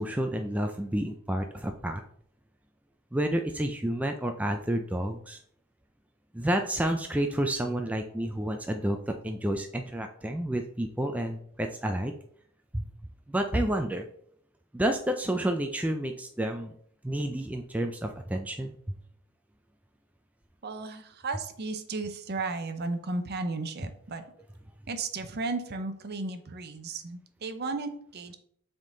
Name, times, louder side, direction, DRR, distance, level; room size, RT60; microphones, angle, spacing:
voice 1, 0.0-2.0 3.1-5.4 6.3-12.1 12.7-12.8 13.3-14.0 14.7-16.7 17.0-19.0, right 1 dB, 5° right, 4 dB, 0.3 m, -30 dB
voice 2, 20.6-24.2 24.9-28.3, right 3 dB, 45° right, 8 dB, 0.6 m, -34 dB
7.3 x 3.7 x 3.8 m, 0.65 s
head